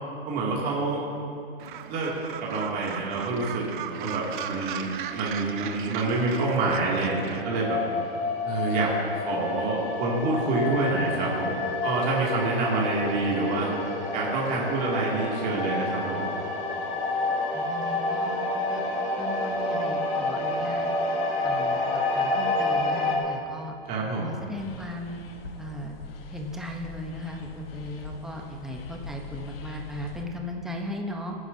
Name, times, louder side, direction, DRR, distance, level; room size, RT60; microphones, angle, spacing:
voice 1, 0.2-1.0 1.9-2.1 2.4-4.9 5.1-7.8 8.4-13.7 14.1-16.3 23.8-24.3, right 3 dB, 30° right, -5 dB, 2.5 m, -27 dB
Gull seagull, 1.6-7.4, right 9 dB, 55° right, 0.8 m, -37 dB
sound 1, 5.1-23.2, left 2 dB, 20° left, 1.9 m, -29 dB
voice 2, 17.5-18.4 18.7-18.8 19.2-20.9 21.4-23.7 24.2-25.2 25.6-26.0 26.3-31.4, left 1 dB, ahead, 1 dB, 0.9 m, -37 dB
sound 2, 24.6-30.2, left 3 dB, 65° left, 1.3 m, -43 dB
19.0 x 9.6 x 2.8 m, 2.5 s
hypercardioid pair, 135°, 31 cm